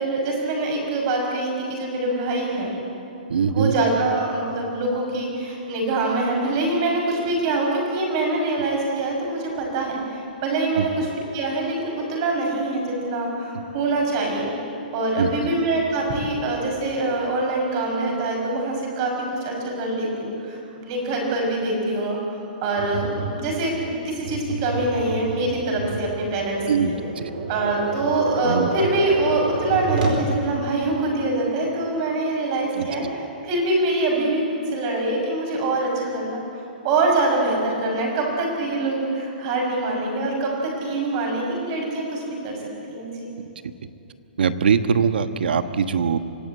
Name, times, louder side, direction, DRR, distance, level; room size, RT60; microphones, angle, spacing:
voice 1, 0.0-2.7 3.5-14.5 14.9-27.0 27.5-34.4 34.7-36.4 36.8-42.5 42.9-43.3, right 2 dB, 35° right, 0 dB, 5.9 m, -24 dB
voice 2, 3.3-3.7 10.8-10.9 15.2-15.3 26.7-27.3 28.4-28.7 32.7-33.1 44.4-46.2, right 6 dB, 85° right, 10 dB, 1.3 m, -22 dB
Tap, 22.8-30.3, right 3 dB, 55° right, 4.2 m, -30 dB
25.0 x 17.0 x 8.6 m, 2.7 s
hypercardioid pair, 170°, 5 cm